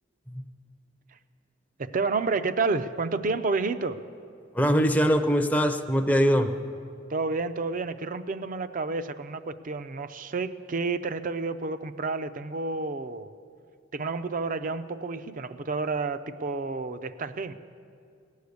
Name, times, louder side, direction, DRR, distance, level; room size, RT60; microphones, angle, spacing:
voice 1, 1.8-4.0 7.1-13.3 13.9-17.5, right 3 dB, 45° right, 13 dB, 0.5 m, -30 dB
voice 2, 4.5-6.5, equal, 10° left, 5 dB, 0.5 m, -22 dB
18.5 x 6.5 x 8.3 m, 2.4 s
head